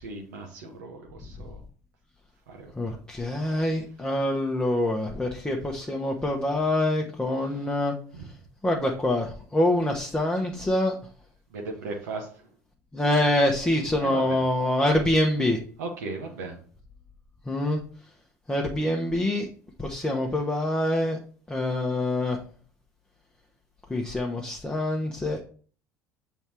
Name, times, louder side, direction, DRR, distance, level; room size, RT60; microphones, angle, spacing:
voice 1, 0.0-1.6 2.5-3.0 8.1-8.3 11.5-12.5 14.0-14.4 15.8-16.6, right 3 dB, 75° right, 1 dB, 1.1 m, -37 dB
voice 2, 2.8-7.9 8.6-11.0 12.9-15.6 17.5-17.8 18.5-19.5 19.8-21.2 21.5-22.4 23.9-25.4, left 1 dB, 10° left, 0 dB, 1.0 m, -25 dB
7.0 x 3.5 x 4.5 m, 0.42 s
hypercardioid pair, 65°, 9 cm